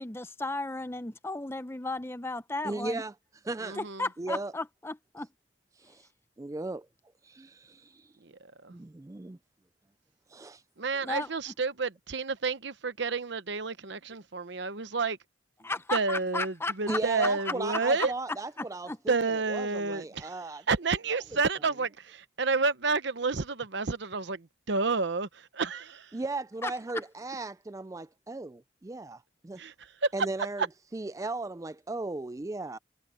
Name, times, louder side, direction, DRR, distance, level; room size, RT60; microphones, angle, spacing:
voice 1, 0.0-3.0 3.8-5.3 11.0-11.3 15.6-17.0 18.9-19.0 26.6-26.7, left 2 dB, 10° left, 0.7 m, -34 dB
voice 2, 2.6-3.1 3.4-3.8 4.2-4.5 5.8-6.1 6.4-6.9 7.2-8.1 8.7-9.4 10.3-10.6 16.9-19.1 19.5-20.6 26.1-29.6 30.1-30.6 30.9-32.8, right 2 dB, 15° right, 0.3 m, -36 dB
voice 3, 3.6-4.1 8.2-8.7 10.8-15.2 15.9-18.1 19.1-26.2 29.6-30.1 30.6-30.7, right 4 dB, 60° right, 0.9 m, -30 dB
head